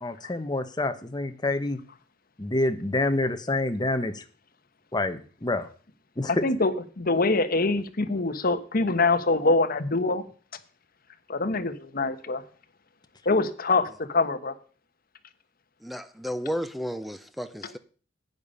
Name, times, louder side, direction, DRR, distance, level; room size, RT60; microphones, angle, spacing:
voice 1, 0.0-1.8 2.4-4.2 4.9-5.7 6.2-6.4, left 2 dB, 20° left, 1.0 m, -27 dB
voice 2, 6.3-10.2 11.3-12.4 13.2-14.5, left 3 dB, 50° left, 1.1 m, -24 dB
voice 3, 15.8-17.8, equal, ahead, 0.8 m, -33 dB
11.0 x 8.8 x 5.4 m
head